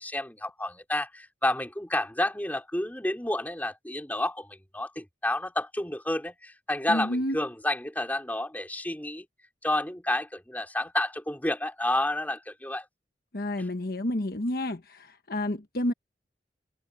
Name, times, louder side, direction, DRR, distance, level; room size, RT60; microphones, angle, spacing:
voice 1, 0.0-9.3 9.6-12.9, left 1 dB, 10° left, 4.3 m, -30 dB
voice 2, 6.9-7.4 13.3-15.9, left 1 dB, 60° left, 1.2 m, -30 dB
head